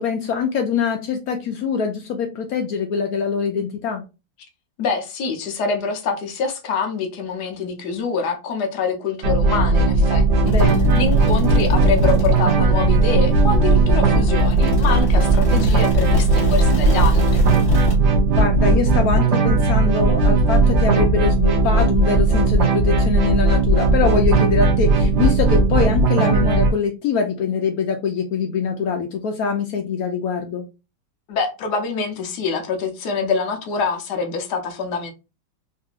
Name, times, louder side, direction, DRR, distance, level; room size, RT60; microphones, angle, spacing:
voice 1, 0.0-4.0 10.5-10.9 14.6-14.8 18.3-30.6, left 5 dB, 80° left, 0.8 m, -23 dB
voice 2, 4.8-17.4 31.3-35.1, left 4 dB, 65° left, 1.2 m, -25 dB
sound 1, 9.2-26.7, right 2 dB, 75° right, 0.6 m, -17 dB
sound 2, 10.5-17.9, right 2 dB, 35° left, 1.7 m, -24 dB
3.8 x 2.6 x 2.4 m
omnidirectional pair, 2.1 m